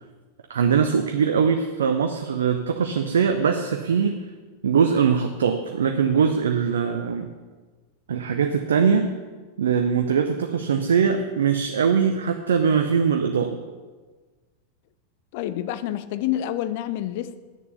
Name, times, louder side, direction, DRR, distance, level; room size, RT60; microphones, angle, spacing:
voice 1, 0.5-4.2 4.6-7.3 8.1-9.1 9.6-13.6, right 6 dB, 65° right, 6 dB, 0.6 m, -21 dB
voice 2, 15.3-17.4, left 12 dB, 50° left, 13 dB, 0.6 m, -28 dB
10.0 x 6.8 x 7.0 m, 1.4 s
figure-of-eight pair, 90°, 0 cm